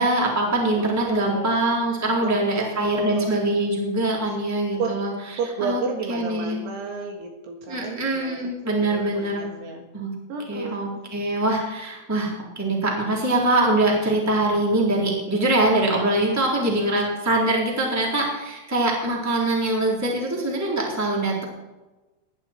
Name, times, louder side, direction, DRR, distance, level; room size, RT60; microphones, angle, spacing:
voice 1, 0.0-5.1 5.6-5.8 6.1-6.6 7.7-9.5 9.9-10.1 10.5-21.4, right 2 dB, 5° right, -3 dB, 2.8 m, -23 dB
voice 2, 0.7-1.6 2.2-2.3 2.6-3.3 4.8-5.0 5.4-9.8 10.3-11.0, right 4 dB, 65° right, 2 dB, 3.4 m, -32 dB
20.0 x 11.0 x 4.5 m, 1.1 s
omnidirectional pair, 5.8 m